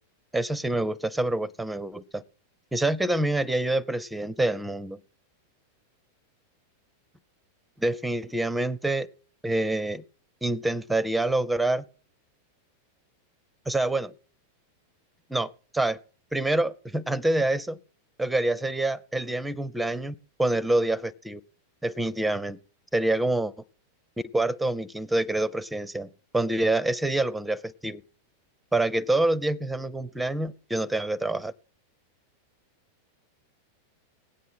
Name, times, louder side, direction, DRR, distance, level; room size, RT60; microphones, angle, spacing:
voice 1, 0.3-2.2 2.7-5.0 7.8-9.1 9.4-10.0 10.4-11.8 13.7-14.1 15.3-16.0 16.3-17.8 18.2-21.4 21.8-22.6 22.9-23.5 24.3-28.0 28.7-31.5, right 2 dB, 5° right, 21 dB, 0.5 m, -26 dB
18.5 x 8.4 x 5.7 m, 0.44 s
figure-of-eight pair, 90°, 0 cm